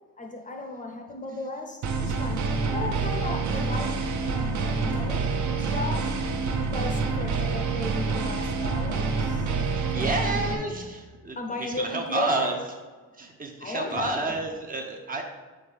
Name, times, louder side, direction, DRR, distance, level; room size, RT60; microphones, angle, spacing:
voice 1, 0.2-6.1 6.5-9.5 9.8-10.8 11.4-12.6 13.6-14.3, left 2 dB, 25° left, 3 dB, 0.6 m, -35 dB
sound 1, 1.8-10.5, right 4 dB, 60° right, 0.8 m, -27 dB
voice 2, 9.4-12.6 13.1-15.2, right 2 dB, 25° right, 2 dB, 0.6 m, -30 dB
7.2 x 4.4 x 3.3 m, 1.4 s
cardioid pair, 150°, 33 cm